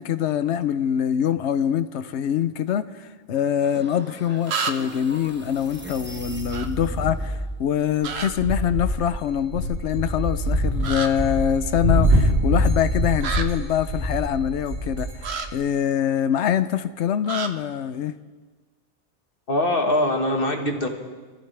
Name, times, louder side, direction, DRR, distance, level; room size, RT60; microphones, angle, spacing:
voice 1, 0.0-18.1, left 9 dB, 75° left, 12 dB, 1.0 m, -24 dB
sound 1, 3.4-3.5 4.5-5.0 6.5-6.7 8.0-8.3 10.8-11.1 13.2-13.4 15.2-15.5 17.2-17.5, right 5 dB, 65° right, 1.1 m, -28 dB
sound 2, 3.6-7.6, right 1 dB, 10° right, 0.8 m, -35 dB
sound 3, 8.0-15.5, equal, 85° right, 4.2 m, -24 dB
voice 2, 19.5-20.9, left 1 dB, 50° left, 2 dB, 1.8 m, -22 dB
26.5 x 14.5 x 3.4 m, 1.3 s
omnidirectional pair, 1.2 m